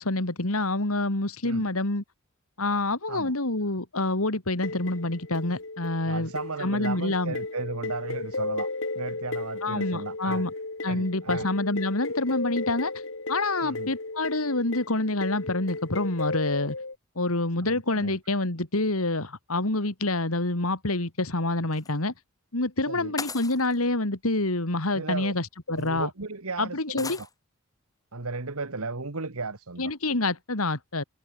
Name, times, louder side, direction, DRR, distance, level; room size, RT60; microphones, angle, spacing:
voice 1, 0.0-2.0 2.6-6.3 6.6-7.3 9.6-10.5 10.8-12.9 13.3-16.8 17.2-22.1 22.5-26.1 26.6-27.2 29.8-31.0, left 2 dB, 75° left, 2.8 m, -27 dB
Mistery keys, 4.6-16.9, left 3 dB, 60° left, 1.9 m, -35 dB
voice 2, 6.0-8.7 9.0-10.4 10.9-11.5 13.6-13.9 17.6-18.2 22.9-23.1 24.9-25.3 25.7-27.3 28.1-29.9, right 3 dB, 80° right, 1.7 m, -35 dB
sound 1, 21.7-21.9 23.2-23.8 25.0-25.1 25.8-25.9 27.0-27.3, left 4 dB, 15° left, 2.6 m, -37 dB
head